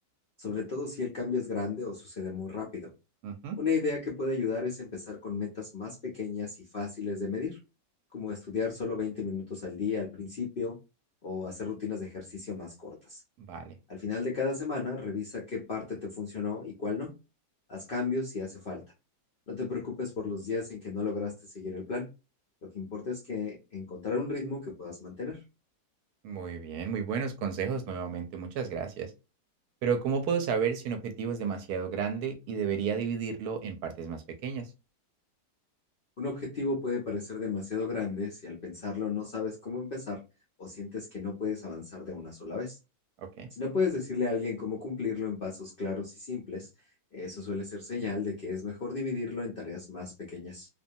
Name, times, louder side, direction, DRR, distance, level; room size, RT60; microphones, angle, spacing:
voice 1, 0.4-2.9 3.6-7.6 8.1-10.7 11.2-13.2 13.9-17.1 17.7-18.8 19.5-22.1 22.7-25.4 36.2-40.2 40.6-42.8 43.5-46.7 47.1-50.7, left 4 dB, 65° left, -1 dB, 0.5 m, -34 dB
voice 2, 3.2-3.6 13.5-13.7 26.2-29.1 29.8-34.7 43.4-43.5, right 6 dB, 75° right, 6 dB, 1.0 m, -32 dB
2.6 x 2.2 x 2.6 m, 0.28 s
omnidirectional pair, 1.8 m